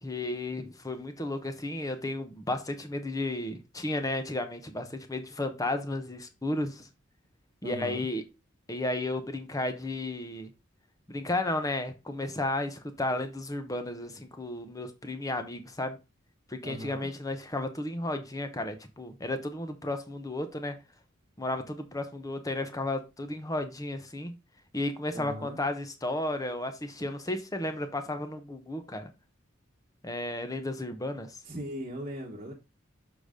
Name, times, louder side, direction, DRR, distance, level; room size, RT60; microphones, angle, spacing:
voice 1, 0.0-6.9 7.6-8.2 8.7-10.5 11.1-16.0 16.5-20.7 21.4-24.3 24.7-29.1 30.0-31.4, left 2 dB, 15° left, 0.8 m, -33 dB
voice 2, 7.6-8.1 16.6-17.1 25.1-25.6 31.4-32.5, equal, 30° right, 1.3 m, -39 dB
6.6 x 3.9 x 5.0 m
head